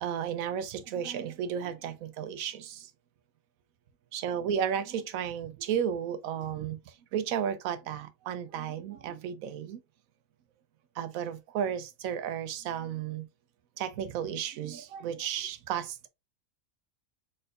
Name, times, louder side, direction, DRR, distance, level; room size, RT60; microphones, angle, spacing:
voice 1, 0.0-2.9 4.1-6.8 7.1-9.8 11.0-13.3 13.8-16.1, right 8 dB, 80° right, 1.0 m, -33 dB
4.1 x 3.8 x 2.5 m
omnidirectional pair, 1.4 m